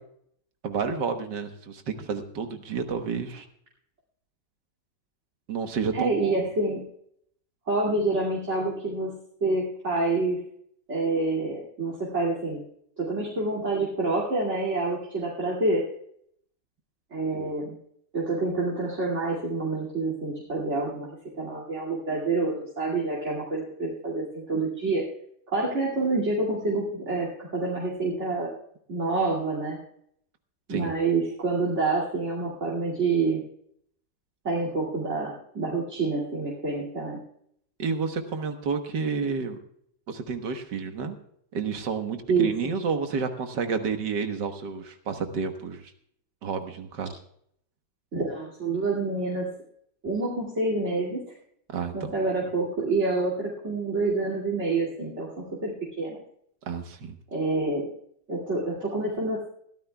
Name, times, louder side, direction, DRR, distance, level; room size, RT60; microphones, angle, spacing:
voice 1, 0.6-3.5 5.5-6.4 30.7-31.0 37.8-39.6 40.1-41.2 41.5-45.9 46.4-47.1 51.7-52.1 56.6-57.2, right 5 dB, 75° right, 6 dB, 1.9 m, -30 dB
voice 2, 5.9-6.8 7.7-9.2 9.4-10.4 10.9-12.6 13.0-15.8 17.1-17.7 18.1-21.1 21.4-25.0 25.5-28.5 28.9-29.8 30.7-33.4 34.4-37.2 42.3-42.5 48.1-49.5 50.0-51.2 51.9-56.2 57.3-57.9 58.3-59.5, right 3 dB, 40° right, -4 dB, 2.8 m, -27 dB
22.0 x 14.0 x 2.3 m, 0.70 s
omnidirectional pair, 1.9 m